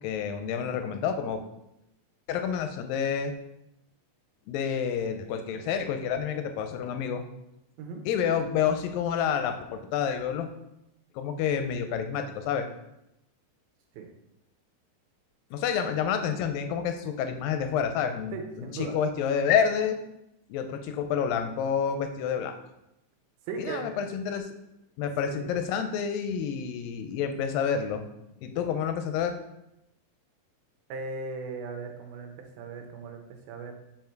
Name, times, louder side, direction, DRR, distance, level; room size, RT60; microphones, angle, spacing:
voice 1, 0.0-1.4 2.3-3.3 4.5-7.2 8.1-10.5 11.2-12.7 15.5-20.0 20.5-22.5 23.6-24.5 25.0-28.0 28.4-29.4, left 7 dB, 80° left, 7 dB, 2.2 m, -29 dB
voice 2, 18.3-19.0 23.5-23.9 25.3-25.5 30.9-33.7, right 4 dB, 85° right, 3 dB, 2.8 m, -38 dB
5.6 x 5.1 x 4.5 m, 0.85 s
omnidirectional pair, 4.2 m